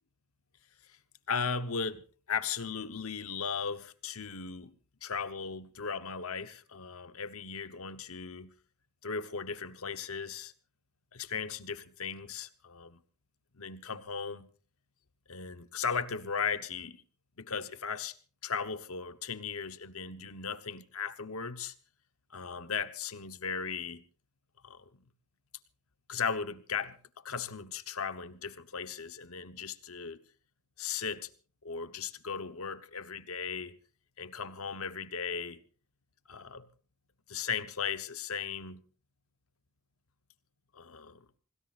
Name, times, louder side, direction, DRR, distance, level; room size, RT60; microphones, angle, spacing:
voice 1, 1.3-4.7 5.0-8.5 9.0-10.5 11.1-13.0 13.5-14.5 15.3-17.0 17.4-18.2 18.4-21.7 22.3-24.0 24.6-24.9 26.1-27.0 27.2-30.2 30.8-31.3 31.6-33.8 34.2-35.6 36.3-36.7 37.3-38.8 40.7-41.2, left 6 dB, 70° left, 1.1 m, -37 dB
27.5 x 18.0 x 2.5 m
head